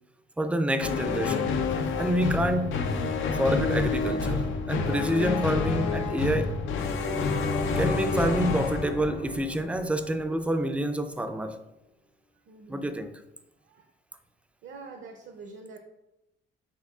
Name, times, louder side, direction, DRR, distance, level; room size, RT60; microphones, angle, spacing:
voice 1, 0.4-1.5 2.0-2.8 3.3-6.6 7.8-11.6 12.7-13.2, right 1 dB, 5° right, 0.3 m, -28 dB
sound 1, 0.8-10.2, left 4 dB, 80° left, 0.5 m, -28 dB
voice 2, 12.5-13.0 13.7-13.9 14.6-15.8, right 4 dB, 70° right, 0.6 m, -45 dB
5.8 x 3.6 x 2.3 m
cardioid pair, 90°, 20 cm